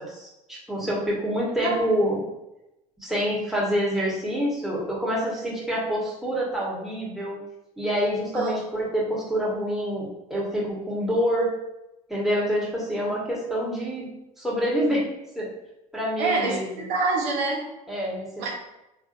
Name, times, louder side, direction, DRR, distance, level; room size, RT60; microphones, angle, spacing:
voice 1, 0.0-2.2 3.0-7.4 7.8-11.5 12.1-14.1 14.4-15.1 15.3-15.5 15.9-16.6 17.9-18.5, equal, ahead, -5 dB, 1.3 m, -26 dB
voice 2, 16.2-17.7 18.4-18.5, right 3 dB, 60° right, -3 dB, 0.8 m, -26 dB
3.4 x 2.7 x 2.5 m, 0.92 s
hypercardioid pair, 70°, 20 cm